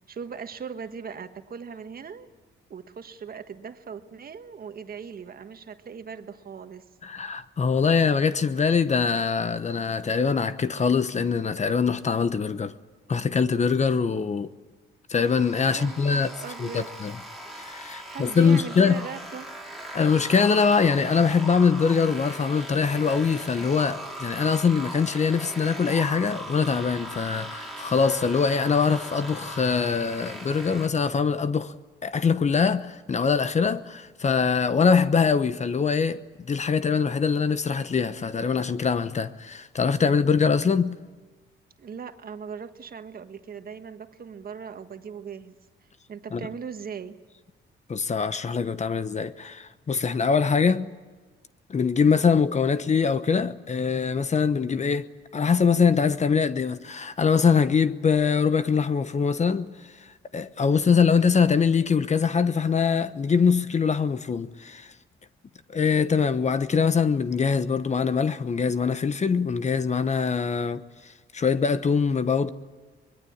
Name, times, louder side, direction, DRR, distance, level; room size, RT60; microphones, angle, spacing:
voice 1, 0.1-2.3 2.7-6.9 15.7-16.9 18.1-19.5 41.8-45.6 46.1-47.2, right 6 dB, 50° right, 1.6 m, -39 dB
voice 2, 7.0-12.7 13.1-14.5 15.1-16.3 16.6-17.1 17.6-19.0 19.9-31.7 32.0-41.0 46.3-46.4 47.9-50.9 51.7-55.1 55.3-59.7 60.3-64.9 65.7-70.8 71.3-72.5, left 5 dB, 35° left, 1.0 m, -23 dB
sound 1, 15.2-30.9, right 1 dB, ahead, 4.3 m, -39 dB
24.0 x 21.5 x 8.7 m
cardioid pair, 90°, 20 cm